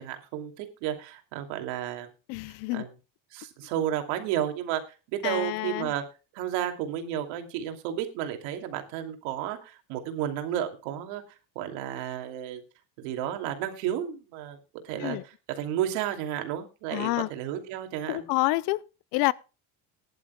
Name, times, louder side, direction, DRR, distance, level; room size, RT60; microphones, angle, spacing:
voice 1, 0.0-2.1 2.7-2.9 3.3-4.8 5.1-6.0 6.3-11.2 11.5-12.6 13.0-18.3, right 11 dB, 75° right, 2.8 m, -32 dB
voice 2, 2.3-2.8 5.2-5.9 15.0-15.2 16.9-17.3 18.1-18.8 19.1-19.3, left 20 dB, 60° left, 0.6 m, -28 dB
20.0 x 11.0 x 2.3 m
cardioid pair, 170°, 41 cm